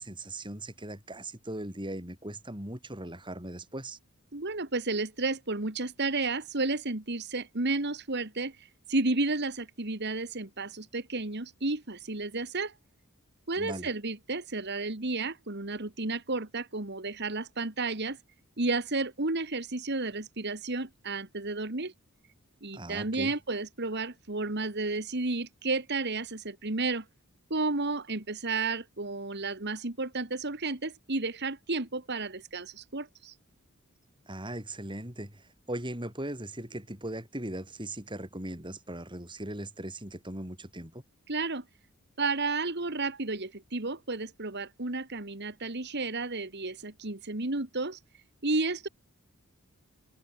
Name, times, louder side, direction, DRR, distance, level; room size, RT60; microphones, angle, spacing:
voice 1, 0.0-4.0 13.6-13.9 22.7-23.3 34.3-41.0, right 1 dB, 20° right, 5.4 m, -39 dB
voice 2, 4.3-12.7 13.5-18.2 18.6-21.9 22.6-27.1 27.5-33.4 41.3-41.6 42.2-48.0 48.4-48.9, right 3 dB, 50° right, 2.1 m, -32 dB
head